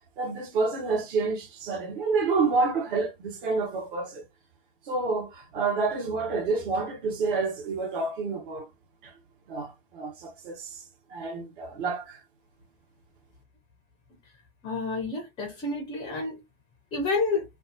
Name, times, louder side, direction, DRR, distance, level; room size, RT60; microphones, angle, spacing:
voice 1, 0.2-4.2 4.9-8.7 9.0-9.1 9.5-10.8 11.1-12.2, right 4 dB, 60° right, 1.1 m, -28 dB
voice 2, 14.6-16.4 16.9-17.4, left 3 dB, 15° left, 0.4 m, -29 dB
2.5 x 2.3 x 2.5 m
hypercardioid pair, 145°, 29 cm